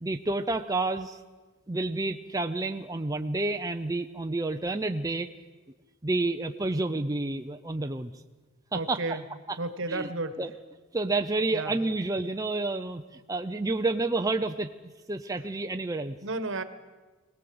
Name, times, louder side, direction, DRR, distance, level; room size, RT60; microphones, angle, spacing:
voice 1, 0.0-1.2 1.7-5.3 6.0-8.1 8.7-9.2 9.5-9.6 9.9-10.1 10.4-10.5 10.9-14.7 15.1-16.2, right 2 dB, 15° right, 6 dB, 0.6 m, -29 dB
voice 2, 8.7-9.2 9.6-10.4 11.5-11.7 16.2-16.6, right 2 dB, 65° right, 11 dB, 1.4 m, -32 dB
21.0 x 18.0 x 7.8 m, 1.3 s
head